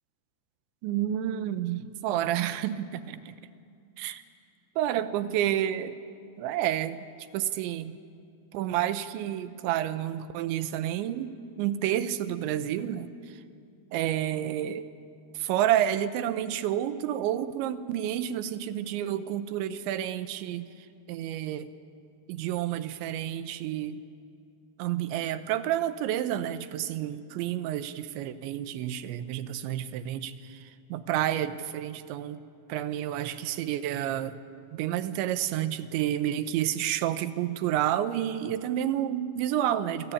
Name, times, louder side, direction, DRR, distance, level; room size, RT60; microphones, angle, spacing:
voice 1, 0.8-3.4 4.0-4.2 4.8-6.0 6.4-7.0 7.3-8.0 8.5-13.4 13.9-14.9 15.3-21.7 22.3-24.0 24.8-32.4 32.7-34.4 34.7-40.1, right 11 dB, 80° right, 11 dB, 3.2 m, -30 dB
28.0 x 24.0 x 8.7 m, 2.4 s
omnidirectional pair, 5.4 m